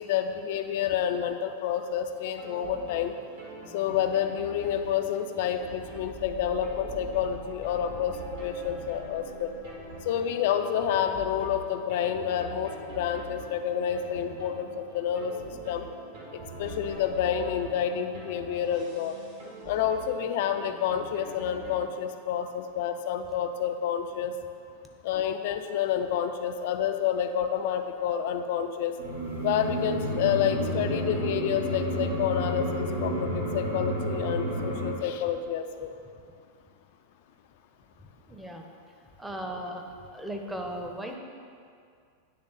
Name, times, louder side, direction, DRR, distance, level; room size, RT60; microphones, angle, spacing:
voice 1, 0.0-3.1 3.7-9.5 10.0-15.9 16.3-19.2 19.7-24.3 25.0-28.9 29.4-35.9, left 9 dB, 50° left, 7 dB, 0.3 m, -29 dB
sound 1, 2.1-21.8, right 3 dB, 55° right, 1.5 m, -44 dB
sound 2, 29.0-34.9, equal, 80° right, 1.1 m, -30 dB
voice 2, 38.3-38.6 39.2-39.8 40.1-41.2, right 1 dB, 5° right, 2 dB, 0.7 m, -36 dB
9.5 x 3.4 x 3.9 m, 2.3 s
figure-of-eight pair, 90°, 0 cm